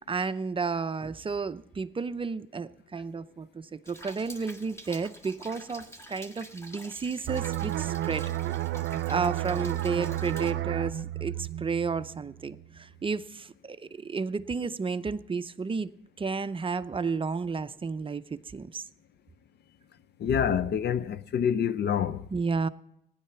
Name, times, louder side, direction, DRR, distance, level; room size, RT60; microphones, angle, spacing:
voice 1, 0.0-8.3 9.1-15.9 16.2-18.8 22.3-22.7, right 5 dB, 25° right, 0.6 m, -32 dB
Rain, 3.9-10.5, equal, 15° left, 1.6 m, -48 dB
sound 1, 7.3-12.7 13.0-13.2, right 14 dB, 90° right, 0.5 m, -32 dB
voice 2, 20.2-22.3, left 8 dB, 60° left, 0.6 m, -27 dB
15.5 x 10.5 x 5.7 m
cardioid pair, 90°, 20 cm